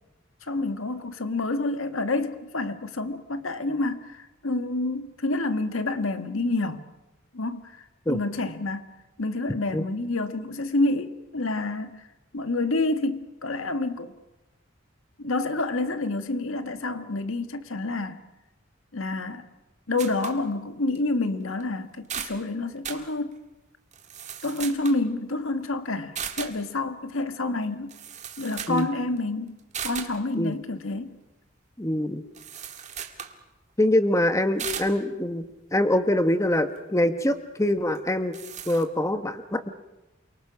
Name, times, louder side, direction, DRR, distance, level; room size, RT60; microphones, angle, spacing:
voice 1, 0.4-6.8 7.3-7.8 8.1-8.9 9.2-12.0 12.3-14.1 15.2-18.2 18.9-19.5 19.9-23.3 24.4-27.9 28.4-29.6 29.8-31.1, left 2 dB, 85° left, 1.6 m, -28 dB
sound 1, 20.0-20.4 20.9-21.0 21.6-21.7 21.9-22.4 22.8-23.1 23.9-25.0 26.2-26.6 27.6-27.7 27.9-28.9 29.2-29.3 29.7-30.2 32.3-33.4 34.6-34.9 37.9-38.0 38.3-38.8, right 8 dB, 35° right, 1.9 m, -36 dB
voice 2, 31.8-32.2 33.8-35.4 35.7-38.3 38.7-39.7, left 1 dB, 15° left, 1.1 m, -24 dB
28.5 x 24.0 x 5.9 m
head